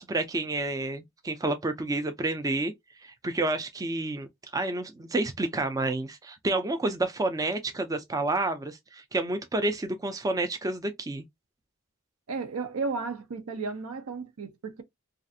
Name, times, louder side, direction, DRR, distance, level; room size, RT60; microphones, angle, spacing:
voice 1, 0.0-2.7 3.0-11.2, right 2 dB, 15° right, 0.4 m, -29 dB
voice 2, 12.3-14.8, right 4 dB, 85° right, 0.6 m, -33 dB
2.4 x 2.4 x 2.5 m
head